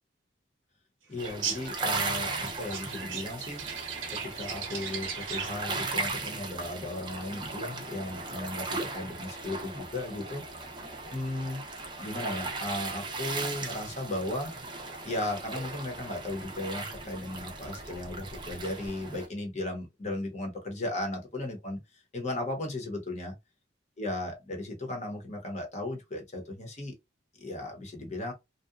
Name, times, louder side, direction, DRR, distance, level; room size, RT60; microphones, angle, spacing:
voice 1, 1.1-3.6 4.1-10.7 11.1-11.6 12.0-14.5 15.0-23.3 24.0-27.0 27.4-28.3, left 1 dB, 35° left, 0.8 m, -36 dB
sound 1, 1.2-19.3, right 3 dB, 25° right, 0.5 m, -37 dB
sound 2, 1.2-5.7, right 6 dB, 85° right, 0.8 m, -38 dB
2.7 x 2.1 x 2.3 m
head